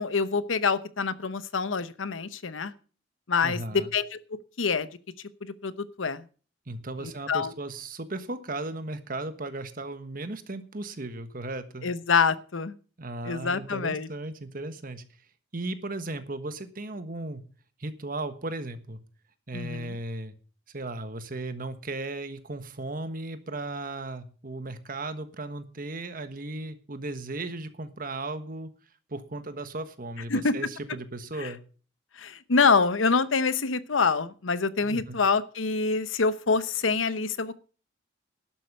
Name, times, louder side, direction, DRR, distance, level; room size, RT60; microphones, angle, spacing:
voice 1, 0.0-2.7 3.3-4.2 4.6-4.9 5.4-6.2 7.0-7.5 11.8-12.7 13.2-14.1 19.5-20.0 30.3-30.6 31.4-31.5 32.2-37.5, left 4 dB, 85° left, 15 dB, 0.9 m, -26 dB
voice 2, 3.4-3.9 6.7-11.9 13.0-15.0 15.5-17.4 17.8-19.0 19.5-20.3 20.7-28.7 29.1-31.6 34.8-35.2, right 2 dB, 45° right, 10 dB, 1.3 m, -36 dB
12.0 x 7.7 x 6.7 m, 0.39 s
head